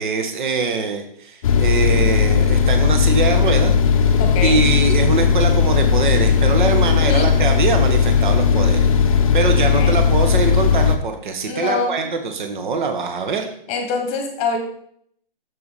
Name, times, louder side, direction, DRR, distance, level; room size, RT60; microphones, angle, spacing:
voice 1, 0.0-8.9 9.3-13.5, right 4 dB, 55° right, 6 dB, 1.2 m, -23 dB
sound 1, 1.4-11.0, left 6 dB, 35° left, 0.7 m, -16 dB
voice 2, 4.2-4.6 7.0-7.3 9.7-10.0 11.4-11.9 13.7-14.6, left 4 dB, 20° left, 5 dB, 1.2 m, -24 dB
7.0 x 6.7 x 4.1 m, 0.67 s
hypercardioid pair, 145°, 29 cm